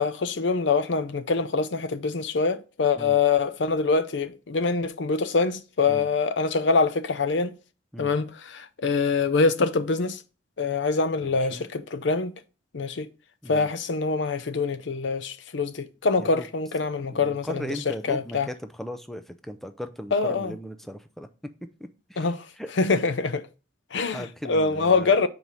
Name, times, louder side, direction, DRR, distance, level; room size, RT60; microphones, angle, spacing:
voice 1, 0.0-7.5 8.0-10.2 10.6-12.3 12.7-13.1 13.5-18.5 20.1-20.6 22.2-22.4 22.8-23.4 23.9-25.3, left 4 dB, 65° left, 0.6 m, -24 dB
voice 2, 17.1-21.3 22.1-22.3 22.6-22.7 24.1-25.2, equal, ahead, 0.5 m, -37 dB
5.3 x 4.7 x 5.5 m
head